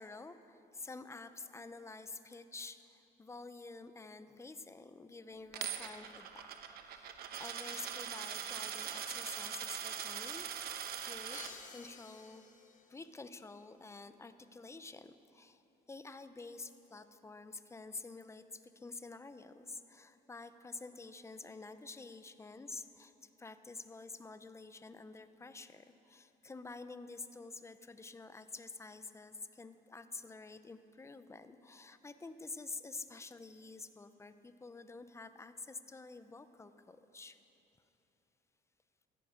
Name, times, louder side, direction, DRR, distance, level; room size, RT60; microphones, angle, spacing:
voice 1, 0.0-6.5 6.8-11.4 11.7-12.4 12.9-15.6 15.9-23.1 23.4-37.4, left 3 dB, 15° left, 11 dB, 0.7 m, -49 dB
Coin (dropping), 5.5-11.5, right 9 dB, 65° right, 1.0 m, -42 dB
Crash cymbal, 11.3-13.2, left 6 dB, 50° left, 1.2 m, -53 dB
16.0 x 13.5 x 5.1 m, 2.9 s
cardioid pair, 110°, 17 cm